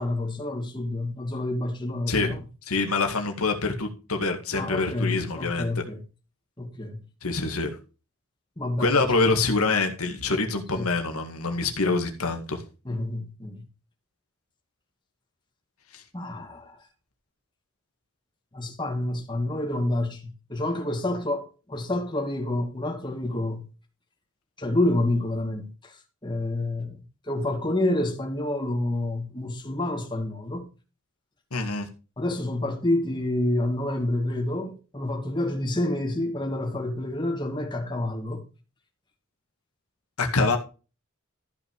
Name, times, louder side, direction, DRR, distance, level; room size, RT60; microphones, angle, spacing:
voice 1, 0.0-2.4 4.6-6.0 6.6-7.0 8.6-9.1 10.7-10.9 12.8-13.7 16.1-16.8 18.5-23.7 24.6-30.6 32.2-38.4, left 1 dB, 20° left, 2.4 m, -28 dB
voice 2, 2.7-5.8 7.2-7.7 8.8-12.6 15.9-16.0 31.5-31.9 40.2-40.6, left 3 dB, 90° left, 2.0 m, -25 dB
13.5 x 5.8 x 4.7 m
head